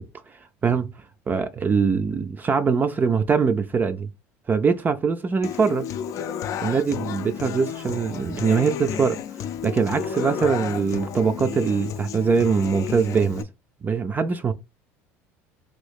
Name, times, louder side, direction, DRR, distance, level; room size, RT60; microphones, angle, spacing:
voice 1, 0.0-4.1 4.5-5.9 6.6-9.2 9.6-13.5 13.8-14.5, right 5 dB, 25° right, 0.4 m, -23 dB
Human voice / Acoustic guitar, 5.4-13.4, left 8 dB, 55° left, 0.4 m, -32 dB
3.0 x 2.7 x 3.4 m
supercardioid pair, 90°, 7 cm